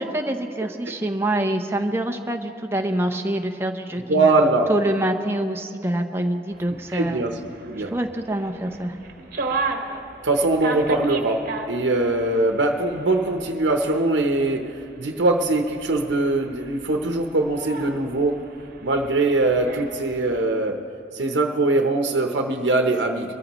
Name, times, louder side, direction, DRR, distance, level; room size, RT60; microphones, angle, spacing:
voice 1, 0.0-4.3 4.7-7.2 7.8-9.0, right 1 dB, 15° right, 4 dB, 0.7 m, -26 dB
voice 2, 4.1-4.7 6.9-7.4 7.7-7.9 10.2-18.4 18.8-20.8 21.1-23.3, right 2 dB, 90° right, 3 dB, 0.9 m, -22 dB
sound 1, 6.5-20.4, right 3 dB, 50° right, 1.2 m, -36 dB
22.5 x 14.0 x 3.0 m, 2.7 s
head